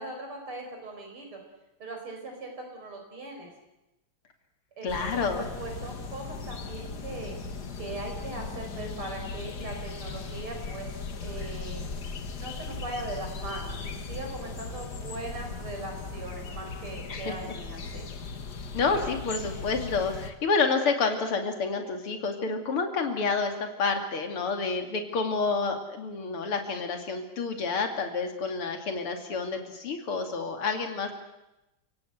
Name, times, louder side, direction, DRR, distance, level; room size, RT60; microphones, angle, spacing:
voice 1, 0.0-1.4 1.8-3.5 4.8-7.4 7.8-10.9 11.2-11.8 12.3-18.1, right 2 dB, 80° right, 3 dB, 6.3 m, -39 dB
voice 2, 4.8-5.4 17.1-17.3 18.7-31.1, left 4 dB, 85° left, 5 dB, 3.5 m, -29 dB
sound 1, 4.9-20.3, left 4 dB, 50° left, 2.1 m, -38 dB
29.5 x 17.5 x 8.0 m, 0.96 s
omnidirectional pair, 2.3 m